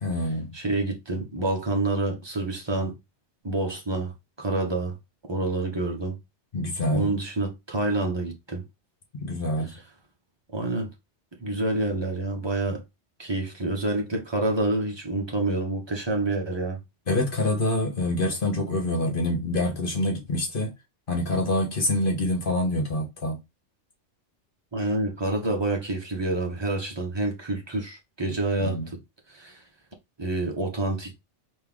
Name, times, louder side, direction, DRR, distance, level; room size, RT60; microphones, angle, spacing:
voice 1, 0.0-0.5 6.5-7.1 9.2-9.7 17.1-20.7 21.1-23.4 28.6-28.9, left 1 dB, 45° left, 1.6 m, -26 dB
voice 2, 0.5-2.9 3.4-5.0 5.3-6.2 6.9-8.6 10.5-10.9 11.4-12.8 13.2-16.8 24.7-29.0 29.3-29.6 30.2-31.1, right 2 dB, 20° right, 1.2 m, -28 dB
4.4 x 3.0 x 3.5 m
omnidirectional pair, 1.2 m